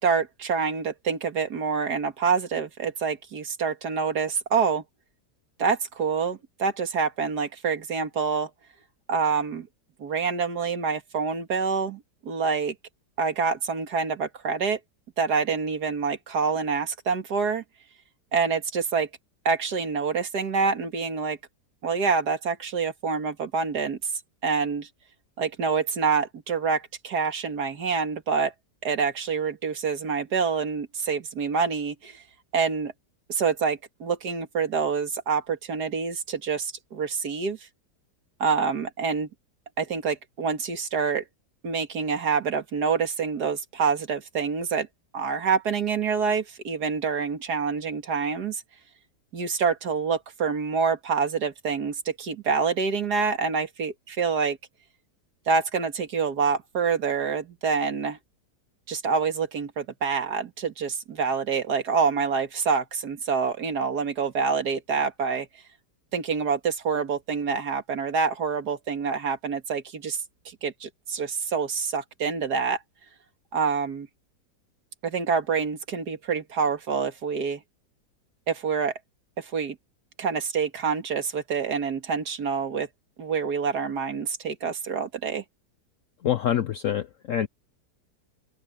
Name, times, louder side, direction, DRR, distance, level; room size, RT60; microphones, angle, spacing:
voice 1, 0.0-4.8 5.6-8.5 9.1-9.7 10.0-12.7 13.2-14.8 15.2-17.6 18.3-19.1 19.4-21.4 21.8-24.0 24.4-24.9 25.4-28.5 28.8-32.2 32.5-32.9 33.3-37.6 38.4-39.3 39.8-41.2 41.6-44.9 45.1-48.6 49.3-54.6 55.5-58.2 58.9-65.5 66.1-70.2 70.5-72.8 73.5-74.1 75.0-77.6 78.5-78.9 79.4-79.8 80.2-82.9 83.2-85.4, right 5 dB, 65° right, 2.4 m, -26 dB
voice 2, 86.2-87.5, left 10 dB, 60° left, 0.9 m, -26 dB
open air
omnidirectional pair, 1.8 m